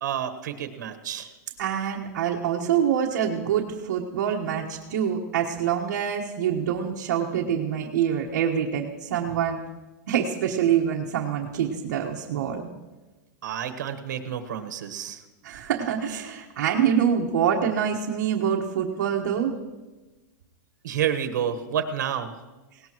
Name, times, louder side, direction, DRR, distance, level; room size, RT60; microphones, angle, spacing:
voice 1, 0.0-1.3 13.4-15.2 20.8-22.3, right 9 dB, 85° right, 7 dB, 1.3 m, -29 dB
voice 2, 1.6-9.6 10.1-12.7 15.4-19.5, right 8 dB, 65° right, -1 dB, 1.4 m, -25 dB
18.5 x 18.0 x 3.1 m, 1.2 s
supercardioid pair, 175°, 10 cm